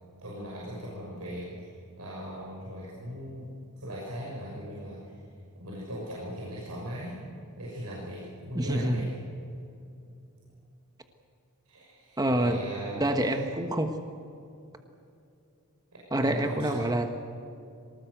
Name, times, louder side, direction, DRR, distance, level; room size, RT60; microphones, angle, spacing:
voice 1, 0.2-1.7 2.0-3.5 3.8-5.1 5.6-7.2 7.6-9.1 11.6-13.4 15.9-16.8, equal, 80° right, -5 dB, 6.3 m, -39 dB
voice 2, 8.5-9.0 12.2-12.6 13.0-13.9 16.1-17.1, right 1 dB, 15° right, 6 dB, 1.3 m, -26 dB
24.0 x 19.5 x 8.1 m, 2.6 s
head